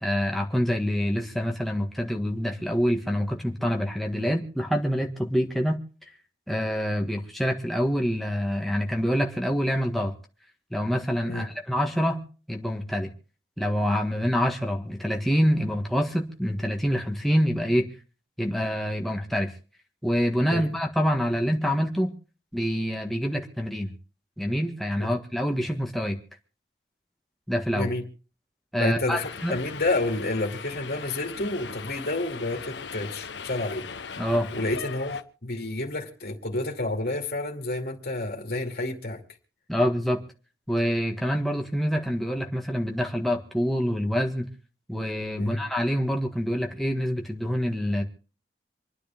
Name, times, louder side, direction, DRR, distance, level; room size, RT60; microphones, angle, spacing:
voice 1, 0.0-5.8 6.5-10.1 10.7-12.2 12.5-13.1 13.6-17.9 18.4-19.5 20.0-22.1 22.5-23.9 24.4-26.2 27.5-27.9 28.7-29.6 34.2-34.5 39.7-40.2 40.7-44.5 44.9-48.0, equal, ahead, 1.7 m, -26 dB
voice 2, 28.8-33.9 34.5-39.2 45.4-45.6, left 2 dB, 55° left, 2.5 m, -29 dB
Subway metro underground, 29.1-35.2, left 5 dB, 85° left, 0.8 m, -39 dB
27.0 x 9.9 x 3.6 m
head